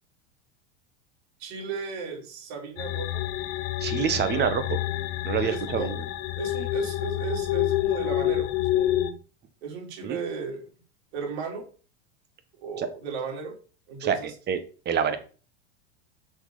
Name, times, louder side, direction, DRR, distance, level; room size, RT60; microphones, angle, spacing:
voice 1, 1.4-3.2 4.3-4.5 5.4-5.9 6.4-9.1 9.6-10.7 11.1-11.7 12.6-13.6 13.9-14.3, right 5 dB, 70° right, 1 dB, 3.6 m, -35 dB
sound 1, 2.8-9.1, left 14 dB, 65° left, 1.0 m, -28 dB
voice 2, 3.8-4.6 5.2-6.0 10.0-10.2 12.8-12.9 14.0-14.6 14.8-15.2, right 7 dB, 30° right, 10 dB, 1.4 m, -26 dB
6.4 x 6.2 x 5.0 m, 0.37 s
supercardioid pair, 125°, 33 cm